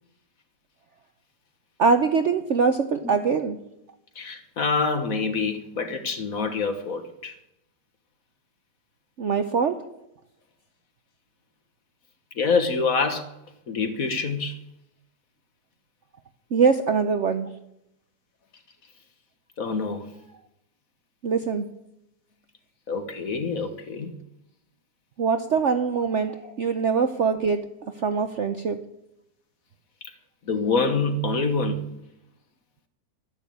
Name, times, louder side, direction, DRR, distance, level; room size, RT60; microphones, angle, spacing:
voice 1, 1.8-3.6 9.2-9.8 16.5-17.5 21.2-21.7 25.2-27.6 28.0-28.8, right 5 dB, 55° right, 0.8 m, -23 dB
voice 2, 4.1-7.3 12.3-13.3 13.7-14.6 19.6-20.1 22.9-24.1 30.4-31.9, left 4 dB, 50° left, 1.6 m, -26 dB
12.0 x 10.5 x 8.6 m
omnidirectional pair, 2.0 m